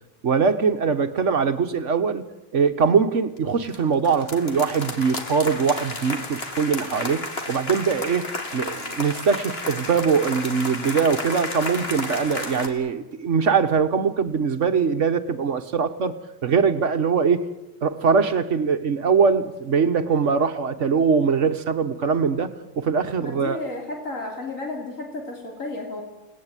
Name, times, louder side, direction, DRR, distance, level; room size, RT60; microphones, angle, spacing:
voice 1, 0.2-2.2 2.5-8.3 8.5-16.2 16.4-17.5 17.8-23.6, right 5 dB, 65° right, 10 dB, 1.6 m, -22 dB
sound 1, 3.4-3.8 4.0-12.7, left 2 dB, 50° left, 2.9 m, -32 dB
voice 2, 23.2-26.0, left 2 dB, 75° left, 1 dB, 3.6 m, -32 dB
30.0 x 18.5 x 9.0 m, 1.0 s
omnidirectional pair, 1.4 m